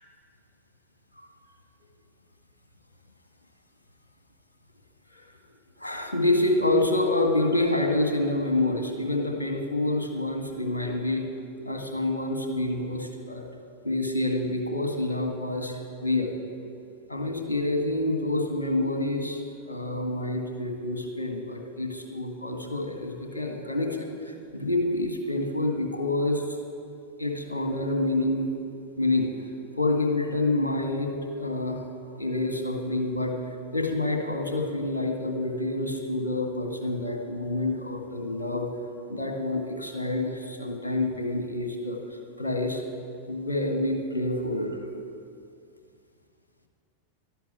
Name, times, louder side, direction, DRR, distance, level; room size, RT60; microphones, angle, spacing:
voice 1, 5.8-11.3 11.6-13.4 13.8-16.3 17.1-26.4 27.2-28.5 29.0-29.3 29.8-31.8 32.2-33.3 33.7-38.7 39.1-42.0 42.4-42.8 43.3-44.8, left 2 dB, 80° left, 3 dB, 1.8 m, -27 dB
11.5 x 11.5 x 8.6 m, 2.5 s
figure-of-eight pair, 90°, 0 cm